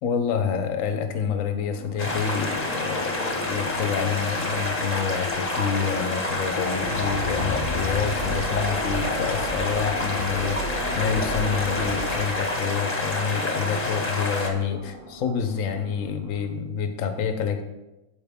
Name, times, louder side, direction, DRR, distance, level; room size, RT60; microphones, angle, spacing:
voice 1, 0.0-17.6, left 6 dB, 55° left, 8 dB, 1.0 m, -28 dB
sound 1, 1.7-16.5, right 1 dB, 70° right, 2.4 m, -45 dB
sound 2, 2.0-14.5, left 2 dB, 25° left, 1.0 m, -28 dB
sound 3, 6.5-12.3, equal, 40° right, 1.3 m, -33 dB
14.0 x 5.0 x 3.6 m, 1.0 s
omnidirectional pair, 2.1 m